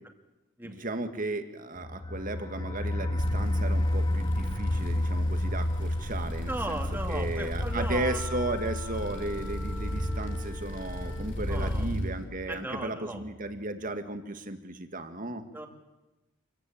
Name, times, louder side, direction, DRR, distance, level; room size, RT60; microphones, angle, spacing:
voice 1, 0.6-15.4, right 2 dB, 40° right, 8 dB, 1.8 m, -35 dB
sound 1, 1.8-12.5 12.8-12.9 13.2-13.3, left 1 dB, 20° left, 0.8 m, -32 dB
sound 2, 3.2-12.1, equal, 60° left, 3.4 m, -35 dB
voice 2, 6.5-8.2 11.5-11.9 12.5-13.2 15.5-15.7, right 1 dB, 10° right, 4 dB, 2.5 m, -36 dB
Wind instrument woodwind instrument, 7.6-11.4, left 5 dB, 75° left, 5.5 m, -44 dB
26.5 x 16.0 x 8.8 m, 1.1 s
head